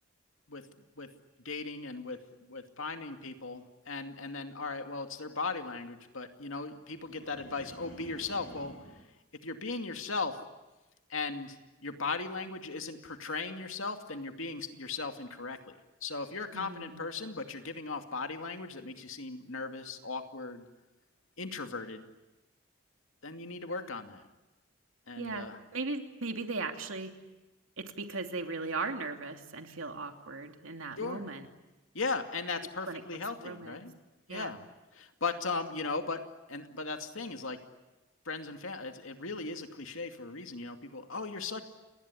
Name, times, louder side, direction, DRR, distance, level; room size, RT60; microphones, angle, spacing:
voice 1, 1.4-8.8 9.4-10.4 11.1-11.6 11.8-20.6 21.4-22.0 23.2-24.2 25.1-25.6 31.0-31.2 31.9-33.9 34.3-34.6 34.9-37.6 38.3-41.6, left 4 dB, 85° left, 5 dB, 2.5 m, -37 dB
sound 1, 6.9-9.0, equal, 65° left, 7.2 m, -51 dB
voice 2, 16.5-17.2 25.2-27.1 27.8-31.5 32.9-33.8 34.3-34.5, right 3 dB, 85° right, 5 dB, 2.8 m, -38 dB
29.5 x 20.0 x 9.9 m, 1.1 s
head